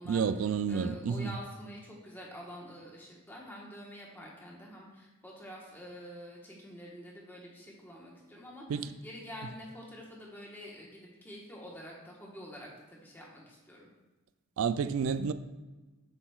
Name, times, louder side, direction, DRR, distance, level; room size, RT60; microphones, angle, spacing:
voice 1, 0.0-1.3 8.7-8.9 14.6-15.3, right 6 dB, 65° right, 0.3 m, -30 dB
voice 2, 0.7-13.9, equal, 10° left, 1.1 m, -47 dB
7.8 x 5.9 x 2.3 m
head